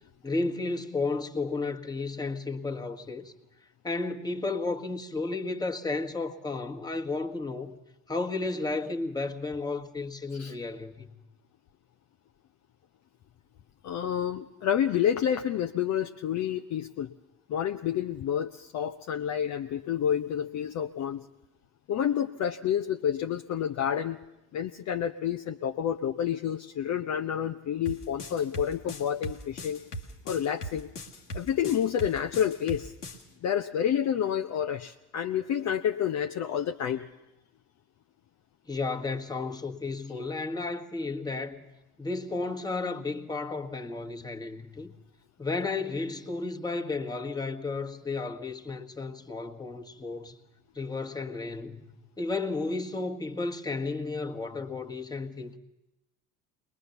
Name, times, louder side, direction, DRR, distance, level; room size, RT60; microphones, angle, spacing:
voice 1, 0.2-3.3 3.8-7.7 8.1-11.1 38.7-41.7 42.0-45.0 45.4-50.3 50.7-51.8 52.2-55.6, left 3 dB, 10° left, 1.6 m, -33 dB
voice 2, 13.8-17.1 17.5-21.3 21.9-24.2 24.5-29.8 30.3-30.9 31.3-32.9 33.4-37.1, left 9 dB, 40° left, 0.8 m, -29 dB
sound 1, 27.9-33.2, equal, 85° left, 1.8 m, -39 dB
22.0 x 20.5 x 7.0 m
figure-of-eight pair, 65°, 45 cm